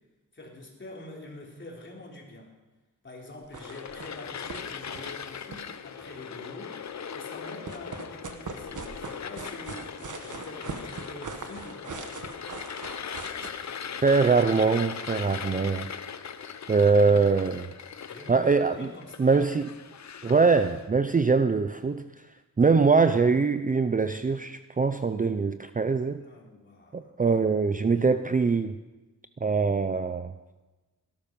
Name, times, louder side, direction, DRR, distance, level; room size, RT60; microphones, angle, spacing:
voice 1, 0.3-2.5 3.0-12.1 16.0-16.5 18.1-19.5 26.2-27.1, left 2 dB, 35° left, -1 dB, 3.7 m, -45 dB
sound 1, 3.4-4.2 4.5-4.6 4.9-6.3 7.4-13.5, right 4 dB, 60° right, 1.5 m, -40 dB
sound 2, 3.5-20.8, left 7 dB, 55° left, 0.8 m, -39 dB
voice 2, 14.0-15.9 16.7-17.7 18.3-18.9 19.2-19.7 20.2-22.1 22.6-26.2 26.9-28.8 29.4-30.3, right 4 dB, 25° right, 10 dB, 0.5 m, -23 dB
18.0 x 12.5 x 5.3 m, 1.2 s
wide cardioid pair, 110°, 34 cm